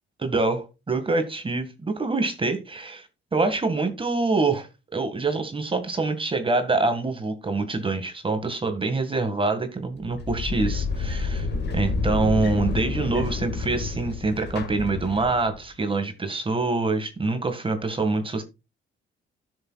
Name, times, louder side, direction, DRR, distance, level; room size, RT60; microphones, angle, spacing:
voice 1, 0.2-11.5 11.7-18.4, right 3 dB, 25° right, 1.8 m, -25 dB
sound 1, 10.0-15.6, left 4 dB, 60° left, 1.9 m, -29 dB
12.5 x 6.9 x 2.4 m
cardioid pair, 90°, 20 cm